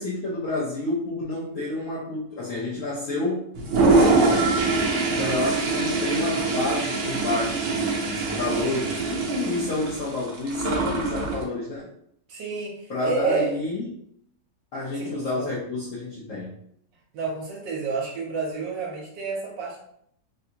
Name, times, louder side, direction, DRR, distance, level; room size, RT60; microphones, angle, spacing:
voice 1, 0.0-3.5 3.8-4.5 5.0-11.9 12.9-13.9 14.7-16.6, left 2 dB, 60° left, -7 dB, 0.9 m, -29 dB
Toilet flush, 3.6-11.4, right 3 dB, 60° right, 1.0 m, -24 dB
voice 2, 5.1-5.4 12.3-13.5 15.0-15.5 17.1-19.8, right 4 dB, 80° right, -2 dB, 1.4 m, -30 dB
3.5 x 2.5 x 2.7 m, 0.70 s
omnidirectional pair, 2.0 m